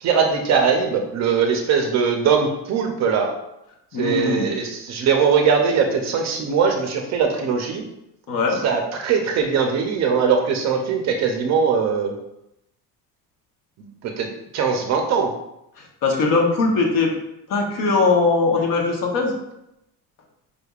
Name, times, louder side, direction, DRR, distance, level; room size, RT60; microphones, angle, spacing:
voice 1, 0.0-3.3 4.0-7.8 8.5-12.1 13.8-13.9 14.2-15.3, right 6 dB, 40° right, 3 dB, 0.5 m, -21 dB
voice 2, 3.9-4.5 8.3-8.6 16.0-17.1 17.5-19.3, left 3 dB, 50° left, 1 dB, 0.9 m, -20 dB
5.1 x 3.3 x 2.3 m, 0.84 s
cardioid pair, 160°, 41 cm